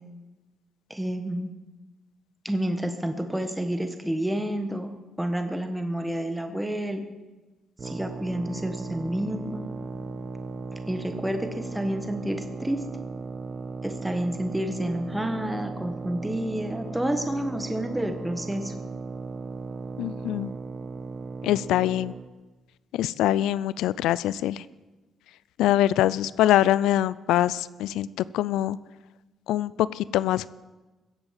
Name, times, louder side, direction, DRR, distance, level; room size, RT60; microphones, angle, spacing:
voice 1, 0.9-1.5 2.4-7.0 7.8-9.6 10.9-12.8 13.8-18.7, right 1 dB, 5° right, 6 dB, 1.3 m, -29 dB
sound 1, 7.8-22.3, right 4 dB, 40° right, 1.2 m, -37 dB
voice 2, 20.0-20.5 21.4-22.1 22.9-24.6 25.6-28.8 29.5-30.5, left 13 dB, 90° left, 19 dB, 0.3 m, -24 dB
17.0 x 8.1 x 7.4 m, 1.2 s
cardioid pair, 90°, 0 cm